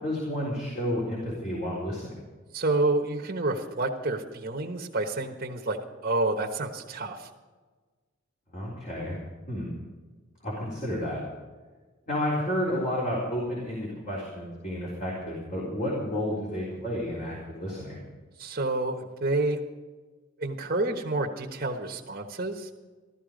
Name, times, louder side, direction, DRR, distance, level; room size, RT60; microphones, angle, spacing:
voice 1, 0.0-2.1 8.5-9.2 9.5-9.7 10.4-11.2 12.1-18.0, left 1 dB, 40° left, -5 dB, 3.9 m, -31 dB
voice 2, 2.5-7.3 18.4-19.6 20.4-22.7, right 2 dB, 45° right, 1 dB, 1.3 m, -29 dB
14.5 x 13.5 x 5.2 m, 1.4 s
head